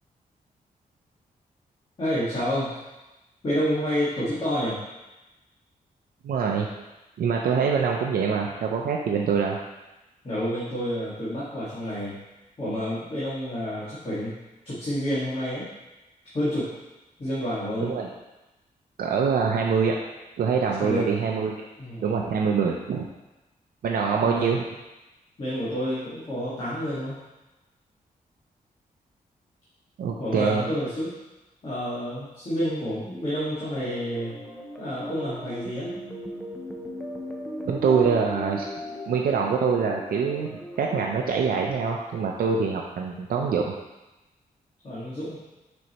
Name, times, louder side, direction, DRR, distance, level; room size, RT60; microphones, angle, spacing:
voice 1, 2.0-2.7 3.4-4.8 10.2-12.2 12.6-14.3 14.7-15.7 16.3-16.7 17.2-17.9 20.8-21.1 21.8-22.2 24.2-24.5 25.4-27.2 30.2-31.1 31.6-34.3 34.8-35.9 44.8-45.4, equal, 35° left, -12 dB, 1.8 m, -29 dB
voice 2, 6.2-6.7 7.2-9.6 17.8-18.1 19.0-20.0 20.4-21.6 22.0-23.1 23.8-24.6 30.0-30.6 37.7-38.6 39.1-43.8, right 6 dB, 80° right, 0 dB, 0.5 m, -24 dB
sound 1, 33.7-42.3, equal, 5° left, 0.5 m, -38 dB
6.2 x 5.3 x 3.0 m, 1.0 s
wide cardioid pair, 175°, 15 cm